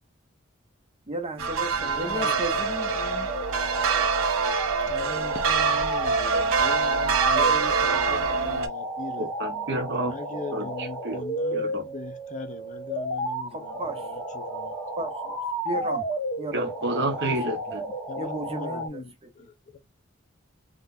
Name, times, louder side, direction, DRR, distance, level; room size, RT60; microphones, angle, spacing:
voice 1, 1.1-3.3 13.5-14.1 15.0-15.4 15.6-16.7 18.2-19.0, right 1 dB, 30° right, 0.9 m, -34 dB
sound 1, 1.4-8.7, right 5 dB, 75° right, 0.6 m, -25 dB
voice 2, 1.8-2.5 4.9-9.3 10.1-14.7 18.1-19.5, left 3 dB, 40° left, 0.7 m, -39 dB
sound 2, 2.0-18.9, right 1 dB, 15° left, 1.1 m, -33 dB
voice 3, 9.2-10.1 10.5-11.2 11.5-11.9 16.5-17.9, right 1 dB, 55° right, 1.0 m, -30 dB
3.8 x 2.4 x 2.6 m
head